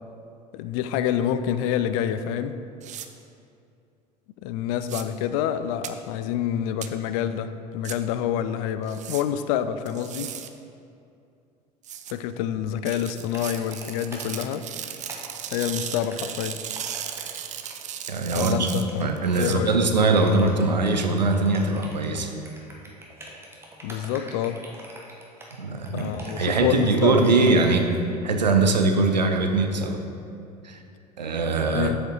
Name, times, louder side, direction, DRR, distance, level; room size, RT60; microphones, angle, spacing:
voice 1, 0.5-2.6 4.4-10.3 12.1-14.6 15.5-16.6 18.3-19.0 19.4-19.7 23.8-24.6 25.9-27.5 31.7-32.0, left 10 dB, 55° left, 11 dB, 0.4 m, -27 dB
sound 1, 2.8-3.1 4.8-5.0 5.8-5.9 6.8-6.9 7.8-8.0 8.9-9.2 9.9-10.5 11.8-12.1 12.9-19.6, right 9 dB, 35° right, 0.5 m, -36 dB
sound 2, 13.3-28.0, right 1 dB, 10° right, 1.4 m, -43 dB
voice 2, 18.1-18.7 19.0-22.3 25.6-28.0 28.2-30.0 30.6-30.8 31.2-31.9, right 3 dB, 85° right, 5 dB, 0.6 m, -22 dB
7.4 x 5.1 x 5.4 m, 2.6 s
figure-of-eight pair, 65°, 21 cm